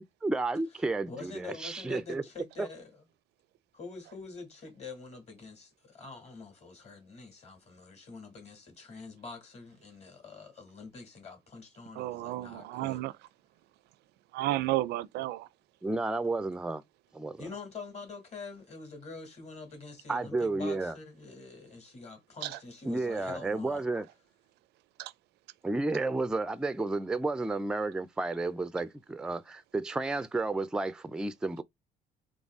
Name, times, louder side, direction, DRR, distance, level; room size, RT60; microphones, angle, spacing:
voice 1, 0.2-2.2 2.6-2.7 15.8-16.8 17.1-17.4 20.1-21.0 22.8-24.1 25.6-31.6, right 2 dB, 5° right, 0.3 m, -32 dB
voice 2, 1.1-2.9 3.7-13.0 17.4-23.8, left 4 dB, 40° left, 2.3 m, -46 dB
voice 3, 12.0-13.1 14.3-15.5 22.4-22.5 25.0-25.1, right 16 dB, 80° right, 0.4 m, -32 dB
4.0 x 3.1 x 3.5 m
cardioid pair, 110°, 17 cm